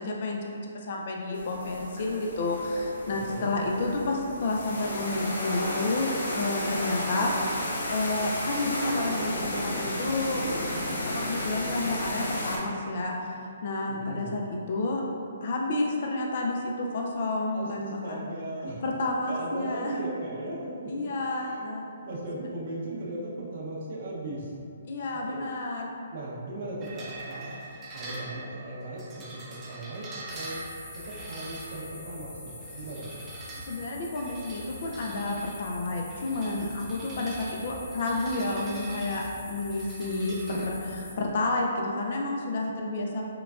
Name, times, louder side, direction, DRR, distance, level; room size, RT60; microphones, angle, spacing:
voice 1, 0.0-7.3 7.6-10.4 11.1-15.0 15.4-18.2 18.8-20.1 20.9-21.8 22.3-22.5 24.9-26.1 33.6-39.2 39.5-43.3, left 2 dB, 50° left, -1 dB, 0.4 m, -30 dB
sound 1, 1.3-12.6, left 1 dB, 80° left, 0.8 m, -33 dB
voice 2, 13.9-14.3 17.5-17.7 18.0-18.8 19.3-20.7 21.4-21.7 22.0-24.5 25.3-25.4 26.1-27.6 27.9-30.6 31.1-33.2 33.5-33.6, right 1 dB, 55° right, -4 dB, 0.7 m, -37 dB
sound 2, 26.8-40.6, right 2 dB, 20° right, 0.5 m, -45 dB
sound 3, 30.3-41.2, left 1 dB, 25° left, 1.2 m, -44 dB
4.8 x 2.2 x 2.4 m, 2.6 s
hypercardioid pair, 150°, 0 cm